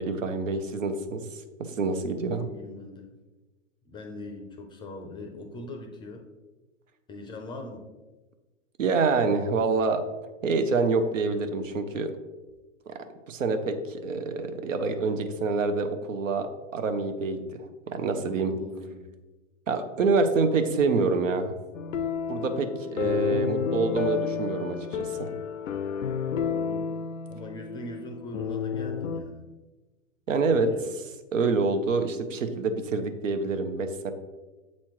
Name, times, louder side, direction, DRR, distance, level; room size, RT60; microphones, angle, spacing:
voice 1, 0.0-1.4 1.7-2.4 8.8-10.0 10.4-12.1 12.9-18.5 19.7-21.5 22.3-25.3 30.3-30.7 31.3-34.1, right 4 dB, 85° right, 8 dB, 0.8 m, -27 dB
voice 2, 2.4-3.1 3.8-6.3 7.1-7.8 18.5-19.1 26.5-26.9 27.3-29.4 30.5-30.8, left 1 dB, 15° left, 4 dB, 0.4 m, -41 dB
sound 1, 21.7-29.2, left 7 dB, 90° left, 0.5 m, -31 dB
7.5 x 4.3 x 3.0 m, 1.2 s
hypercardioid pair, 120°, 38 cm